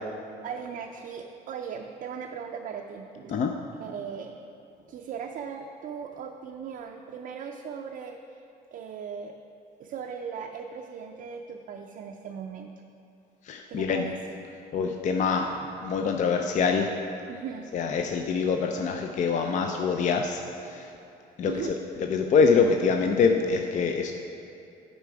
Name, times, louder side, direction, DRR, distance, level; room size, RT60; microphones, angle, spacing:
voice 1, 0.4-3.4 3.8-4.3 4.9-8.4 8.7-9.3 9.8-12.7 13.7-14.2 15.6-15.7 17.3-17.7 21.5-21.7, right 7 dB, 55° right, 2 dB, 0.4 m, -38 dB
voice 2, 13.4-14.1 14.7-15.5 15.8-16.9 17.7-20.9 21.4-21.7 22.0-24.1, left 5 dB, 45° left, 4 dB, 0.5 m, -25 dB
8.2 x 5.1 x 4.6 m, 2.8 s
cardioid pair, 110°, 17 cm